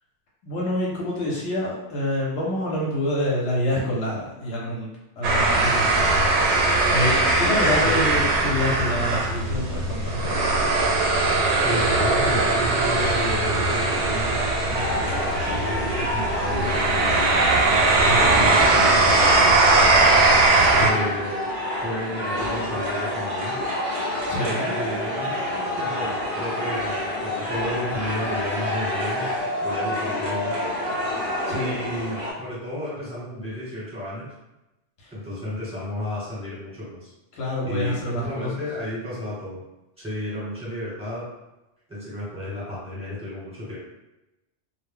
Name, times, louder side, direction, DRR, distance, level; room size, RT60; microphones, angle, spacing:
voice 1, 0.4-4.9 5.2-10.5 18.0-18.5 20.7-21.1 24.3-24.7 31.5-31.8 35.0-35.1 37.3-38.5, left 1 dB, 85° left, -4 dB, 0.9 m, -27 dB
sound 1, 5.2-20.9, right 2 dB, 85° right, 0.9 m, -20 dB
voice 2, 11.6-17.3 18.1-19.8 20.7-21.4 21.8-23.6 24.6-29.3 29.6-30.5 31.5-34.3 35.1-37.1 37.6-39.6 40.0-41.3 41.9-43.8, left 1 dB, 5° right, -9 dB, 1.1 m, -32 dB
sound 2, 14.7-32.3, left 1 dB, 40° right, 0.6 m, -28 dB
2.1 x 2.0 x 3.5 m, 0.97 s
omnidirectional pair, 1.1 m